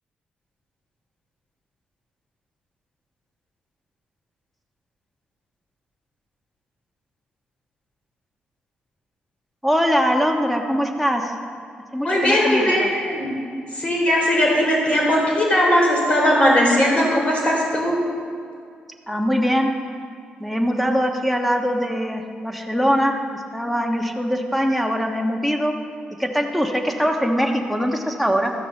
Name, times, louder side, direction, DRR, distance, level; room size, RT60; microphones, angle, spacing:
voice 1, 9.6-11.3 11.9-12.9 19.1-19.7 20.4-25.7 26.2-28.5, equal, ahead, 3 dB, 1.3 m, -22 dB
voice 2, 12.0-13.3 13.7-18.0, equal, 35° left, -2 dB, 3.9 m, -19 dB
14.0 x 7.6 x 6.6 m, 2.3 s
cardioid pair, 105°, 3 cm